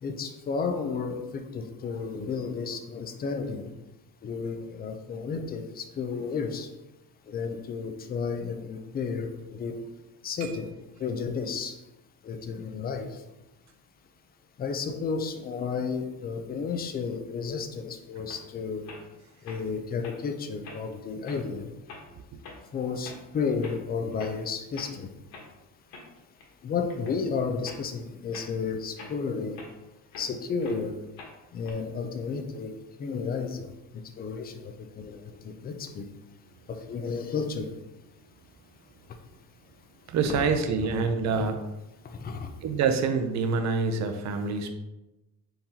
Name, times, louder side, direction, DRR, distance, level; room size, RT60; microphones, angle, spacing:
voice 1, 0.0-3.7 4.2-6.7 7.3-9.7 10.2-10.7 11.0-11.8 12.2-13.2 14.6-18.9 19.4-21.7 22.7-25.1 26.6-29.6 30.2-30.9 31.5-32.7 33.0-33.7 34.2-36.0 36.7-37.7 41.3-41.5 42.0-42.5, left 5 dB, 25° left, 6 dB, 0.4 m, -32 dB
sound 1, 18.3-18.4 18.8-19.1 19.5-19.6 20.0-20.2 20.6-20.9 21.2-21.4 21.9-22.0 22.4-22.6 23.0-23.2 23.6-23.8 24.1-24.4 24.7-24.9 25.3-25.5 25.9-26.5 26.9-27.2 27.6-27.8 28.3-28.5 29.0-30.3 30.6-30.8 31.2-31.7, left 3 dB, 90° left, 1.2 m, -45 dB
voice 2, 40.1-41.7 42.6-44.7, right 5 dB, 50° right, 7 dB, 0.5 m, -26 dB
4.3 x 3.8 x 2.7 m, 0.99 s
cardioid pair, 145°, 37 cm